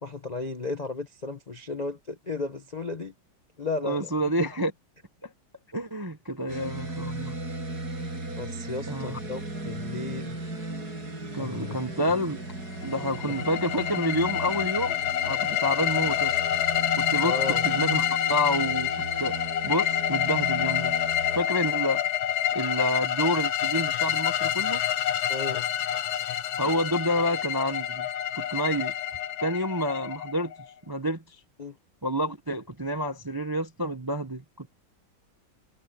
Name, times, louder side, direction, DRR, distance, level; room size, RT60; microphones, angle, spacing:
voice 1, 0.0-3.1 3.6-4.1 6.4-6.6 8.4-10.4 11.4-11.8 17.2-17.6 25.3-25.7 31.6-31.7, left 3 dB, 40° left, 0.6 m, -34 dB
voice 2, 3.8-4.7 5.2-5.3 5.7-7.4 8.9-9.2 11.3-12.4 12.8-15.0 15.2-16.4 17.0-19.4 19.6-20.9 21.3-22.0 22.5-24.8 26.6-28.1 28.3-28.9 29.4-30.5 30.9-31.2 32.0-34.7, equal, 20° right, 0.6 m, -28 dB
sound 1, 6.5-21.4, right 2 dB, 50° right, 7.3 m, -36 dB
sound 2, 12.8-30.7, left 10 dB, 75° left, 1.8 m, -27 dB
omnidirectional pair, 2.2 m